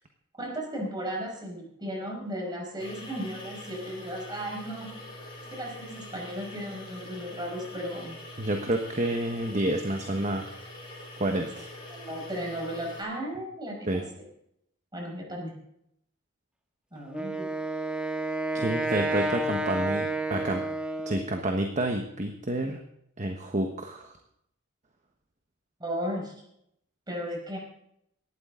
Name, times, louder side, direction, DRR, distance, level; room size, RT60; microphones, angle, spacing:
voice 1, 0.4-4.9 5.5-8.2 11.9-14.0 14.9-15.5 16.9-17.5 25.8-26.3 27.1-27.6, equal, 20° right, 0 dB, 5.4 m, -35 dB
sound 1, 2.8-13.0, left 1 dB, 25° left, 7.2 m, -44 dB
voice 2, 8.4-10.5 11.2-11.7 13.9-14.0 18.5-20.6 21.1-22.8 23.2-24.1, right 1 dB, 35° right, 4 dB, 1.3 m, -29 dB
Wind instrument woodwind instrument, 17.1-21.4, right 2 dB, 5° right, 1.4 m, -30 dB
18.5 x 13.0 x 3.8 m, 0.75 s
head